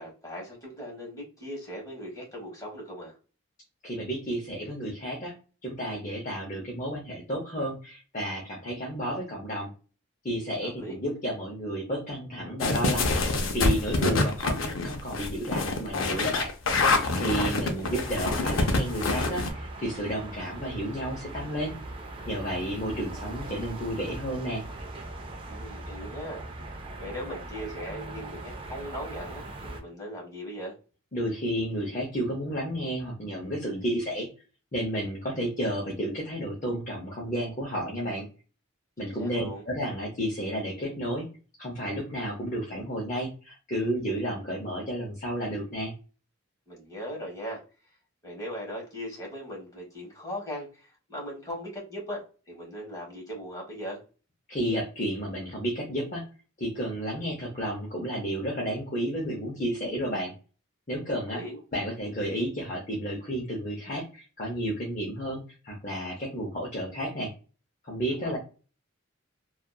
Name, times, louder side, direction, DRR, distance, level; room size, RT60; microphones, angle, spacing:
voice 1, 0.0-3.1 10.6-10.9 17.3-17.9 25.5-26.7 27.0-30.7 39.0-39.6 46.7-47.6 48.2-54.0 61.3-61.6 68.1-68.4, equal, 15° left, -2 dB, 1.2 m, -39 dB
voice 2, 3.8-5.3 5.6-9.7 10.2-16.5 17.1-21.7 22.3-24.6 31.1-34.3 34.7-38.3 39.0-41.3 41.6-45.9 54.5-56.2 56.6-60.3 60.9-61.4 61.7-67.3 67.8-68.4, equal, 40° left, -2 dB, 0.7 m, -32 dB
sound 1, 12.6-19.5, left 3 dB, 80° left, 0.5 m, -26 dB
sound 2, 17.8-29.8, right 2 dB, 25° right, 0.4 m, -40 dB
2.7 x 2.3 x 2.3 m, 0.34 s
head